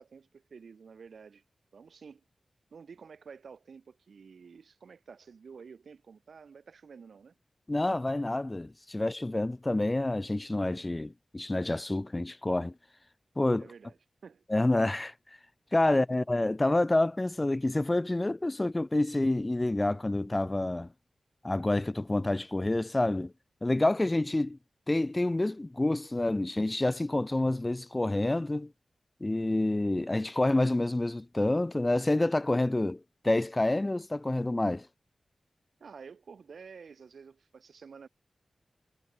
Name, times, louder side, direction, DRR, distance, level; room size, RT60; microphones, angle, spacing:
voice 1, 0.0-1.4 1.7-2.2 2.7-7.4 13.6-14.4 15.9-16.2 35.8-38.1, right 5 dB, 80° right, 4.3 m, -50 dB
voice 2, 7.7-12.7 13.4-13.7 14.5-15.1 15.7-20.9 21.4-23.3 23.6-24.6 24.9-28.7 29.2-34.9, left 2 dB, 25° left, 0.3 m, -28 dB
wide cardioid pair, 75°, 0 cm